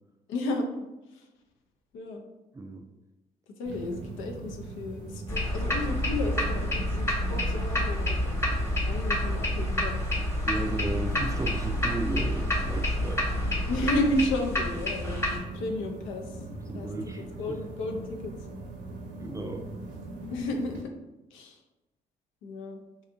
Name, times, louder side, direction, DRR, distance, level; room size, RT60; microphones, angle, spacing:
voice 1, 0.3-0.7 1.1-1.3 1.9-2.2 3.6-8.3 8.9-10.0 13.7-16.4 16.7-16.9 17.4-18.3 20.3-20.8 21.3-21.6 22.4-22.8, left 1 dB, 70° left, 3 dB, 0.5 m, -32 dB
voice 2, 2.5-2.8 10.4-13.2 16.4-17.6 19.2-19.7, right 2 dB, 15° right, 4 dB, 0.4 m, -35 dB
sound 1, 3.7-20.8, right 2 dB, 60° right, 0.7 m, -41 dB
sound 2, 5.3-15.4, left 1 dB, 15° left, 1.0 m, -28 dB
2.7 x 2.4 x 2.4 m, 1.0 s
hypercardioid pair, 45°, 21 cm